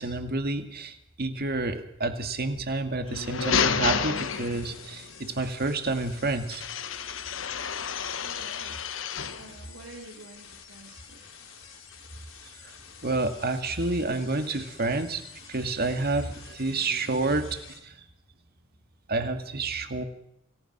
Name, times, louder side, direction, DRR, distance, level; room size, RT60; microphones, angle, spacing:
voice 1, 0.0-6.6 13.0-15.2 15.5-17.5 19.1-20.0, right 2 dB, 50° right, 7 dB, 2.1 m, -29 dB
sound 1, 3.0-5.0 6.5-9.5, left 6 dB, 70° left, 1.2 m, -30 dB
sound 2, 4.1-17.8, left 7 dB, 90° left, 4.8 m, -49 dB
voice 2, 8.2-8.9 9.4-11.3 16.5-16.6 16.9-17.2, right 2 dB, 80° right, 0 dB, 2.9 m, -47 dB
27.5 x 18.0 x 6.0 m, 0.79 s
head